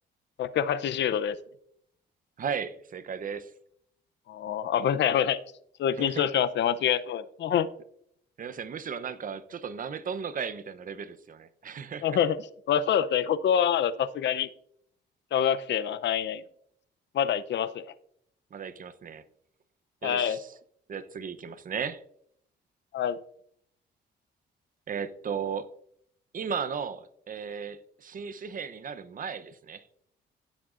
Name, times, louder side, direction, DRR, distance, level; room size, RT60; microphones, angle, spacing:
voice 1, 0.4-1.4 4.3-5.4 5.8-7.7 12.0-12.4 12.7-14.5 15.3-16.4 17.1-17.9 20.0-20.4 22.9-23.2, left 9 dB, 65° left, 0.6 m, -26 dB
voice 2, 2.4-3.5 6.0-6.3 8.4-12.2 18.5-19.2 20.0-20.5 20.9-22.0 24.9-25.7 26.3-29.8, right 6 dB, 45° right, 0.7 m, -35 dB
15.5 x 7.3 x 2.5 m
cardioid pair, 90°, 20 cm